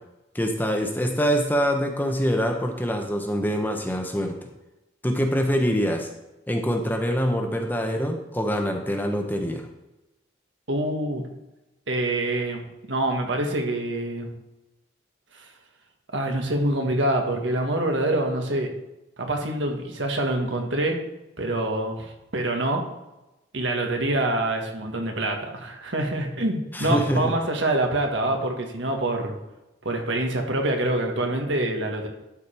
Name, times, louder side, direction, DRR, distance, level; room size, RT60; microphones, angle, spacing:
voice 1, 0.3-4.4 5.0-6.1 6.5-9.7 26.7-27.3, equal, 10° left, 3 dB, 0.9 m, -24 dB
voice 2, 10.7-11.2 11.9-12.6 12.9-14.3 15.3-15.5 16.1-18.7 19.2-21.0 21.4-22.8 23.5-29.4 29.8-32.1, right 1 dB, 70° right, 3 dB, 1.6 m, -25 dB
12.0 x 5.2 x 4.4 m, 0.99 s
head